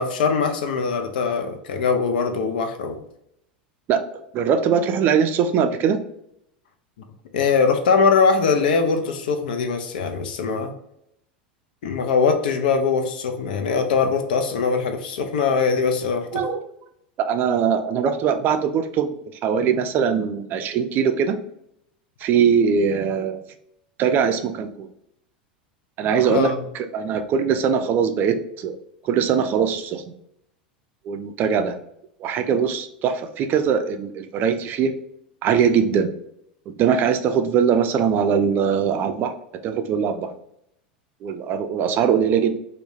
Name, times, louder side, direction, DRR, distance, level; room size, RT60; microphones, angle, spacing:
voice 1, 0.0-3.0 7.3-10.7 11.8-16.4 26.3-26.5, left 5 dB, 70° left, 5 dB, 0.4 m, -21 dB
voice 2, 4.3-6.0 16.3-16.6 17.2-19.1 19.4-21.4 22.2-23.4 24.0-24.9 26.0-28.8 29.0-30.0 31.1-31.8 32.2-34.9 35.4-36.1 36.7-39.3 39.6-40.3 41.2-42.5, right 7 dB, 40° right, 7 dB, 0.4 m, -21 dB
2.2 x 2.1 x 3.1 m, 0.77 s
hypercardioid pair, 90°, 5 cm